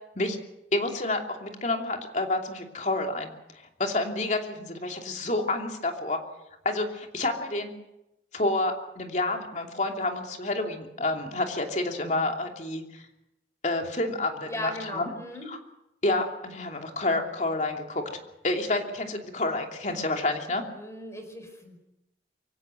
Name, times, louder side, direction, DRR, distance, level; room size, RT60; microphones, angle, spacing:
voice 1, 0.7-3.3 3.8-6.2 6.6-7.7 8.3-13.0 13.6-15.1 15.5-15.6 16.0-18.0 18.4-20.6, left 2 dB, 45° left, 3 dB, 2.8 m, -29 dB
voice 2, 14.5-15.5 20.7-21.8, left 1 dB, 15° left, 6 dB, 4.8 m, -38 dB
24.0 x 16.5 x 7.7 m, 0.88 s
head